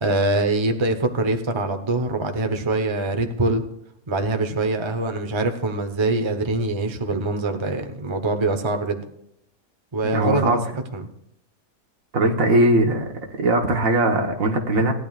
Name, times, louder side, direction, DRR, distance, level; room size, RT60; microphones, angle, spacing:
voice 1, 0.0-3.6 4.1-9.0 9.9-10.6 10.9-11.1, right 2 dB, 25° right, 6 dB, 0.8 m, -23 dB
voice 2, 10.0-10.6 12.1-13.1 13.4-14.9, right 1 dB, 70° right, 4 dB, 1.7 m, -20 dB
17.5 x 10.5 x 2.4 m, 0.75 s
omnidirectional pair, 1.5 m